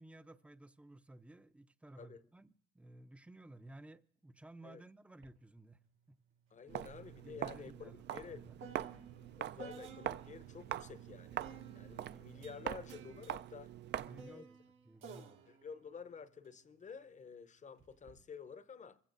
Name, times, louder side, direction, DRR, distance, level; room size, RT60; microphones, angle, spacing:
voice 1, 0.0-5.8 6.1-6.2 7.2-8.6 14.0-15.5, right 1 dB, 5° right, 0.5 m, -56 dB
sound 1, 5.2-5.4 5.7-10.5 11.4-16.9 17.8-18.2, right 5 dB, 85° right, 1.6 m, -56 dB
voice 2, 6.5-8.4 9.4-11.4 11.7-13.7 14.3-14.5 15.5-19.0, left 6 dB, 40° left, 0.7 m, -51 dB
Walk footsteps, 6.7-14.3, right 11 dB, 60° right, 0.4 m, -44 dB
24.0 x 15.5 x 2.6 m
cardioid pair, 90°, 20 cm